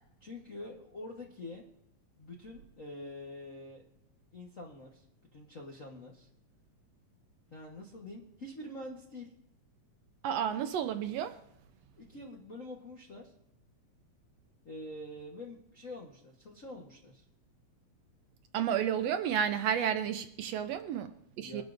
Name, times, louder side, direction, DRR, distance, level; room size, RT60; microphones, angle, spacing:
voice 1, 0.2-1.6 2.2-3.8 4.3-5.0 5.3-6.3 7.5-9.3 12.0-13.3 14.6-17.2 21.4-21.6, left 1 dB, 60° left, 0.8 m, -46 dB
voice 2, 10.2-11.4 18.5-21.6, right 8 dB, 75° right, 1.5 m, -31 dB
22.0 x 11.0 x 2.6 m
omnidirectional pair, 3.4 m